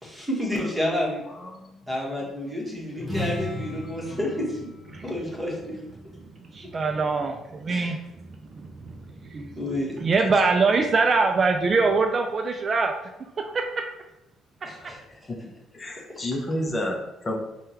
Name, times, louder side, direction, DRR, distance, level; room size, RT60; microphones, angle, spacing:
voice 1, 0.0-1.2 1.9-4.7 5.0-5.8 7.7-7.9 9.5-9.9 14.6-15.0, left 1 dB, 5° right, -4 dB, 1.2 m, -29 dB
voice 2, 1.3-1.9 2.9-4.3 6.9-7.0 9.2-9.3 10.4-10.8 14.8-14.9 15.3-15.4 15.7-17.4, left 1 dB, 30° left, 0 dB, 0.6 m, -33 dB
sound 1, 3.0-6.7, left 1 dB, 25° right, 1.0 m, -36 dB
voice 3, 6.4-8.0 8.5-9.6 10.0-12.9 13.4-13.7, right 4 dB, 45° right, 4 dB, 0.3 m, -23 dB
3.5 x 2.2 x 2.8 m, 0.91 s
supercardioid pair, 80°, 0 cm